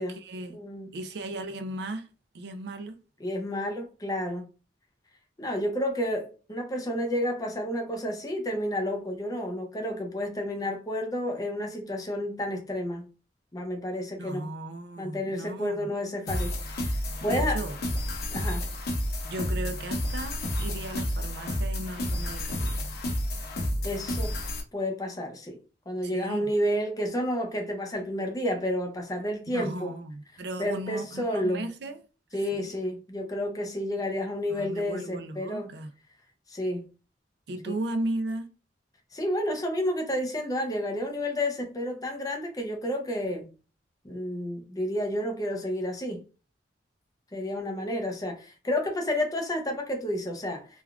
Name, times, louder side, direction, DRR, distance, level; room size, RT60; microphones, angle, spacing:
voice 1, 0.0-0.6 0.9-2.1 2.3-3.0 14.2-15.9 17.2-17.8 19.2-22.9 26.0-26.5 29.5-32.0 32.5-32.7 34.5-35.9 37.5-38.5, right 2 dB, 65° right, 0.4 m, -36 dB
voice 2, 0.5-0.9 3.2-4.5 5.4-13.1 13.5-14.5 15.0-17.6 18.3-18.7 23.8-24.4 24.7-25.6 25.9-29.9 30.6-31.7 32.3-35.7 36.5-36.9 39.1-43.5 44.0-46.2 47.3-50.7, left 1 dB, 20° left, 0.6 m, -30 dB
sound 1, 16.3-24.6, left 1 dB, 60° left, 0.7 m, -30 dB
3.4 x 2.3 x 2.3 m
head